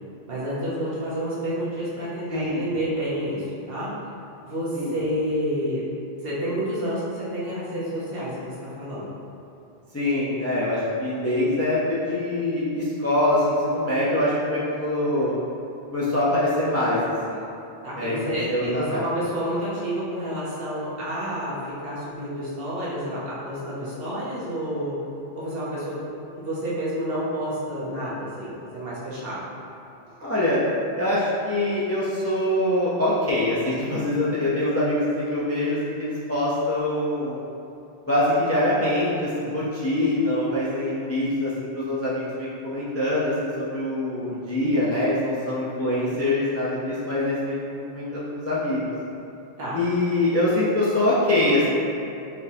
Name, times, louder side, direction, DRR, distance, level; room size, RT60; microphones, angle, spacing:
voice 1, 0.3-3.9 4.4-5.8 6.2-9.1 17.8-25.0 25.3-26.0 26.4-29.4 49.6-49.8, equal, 60° right, -8 dB, 1.2 m, -29 dB
voice 2, 2.3-2.7 4.7-4.9 9.9-15.3 15.9-17.0 17.3-17.4 18.0-19.0 30.2-30.6 31.0-37.4 38.1-48.8 49.7-51.7, left 1 dB, 20° left, -9 dB, 0.4 m, -24 dB
4.3 x 3.2 x 2.7 m, 2.8 s
omnidirectional pair, 1.1 m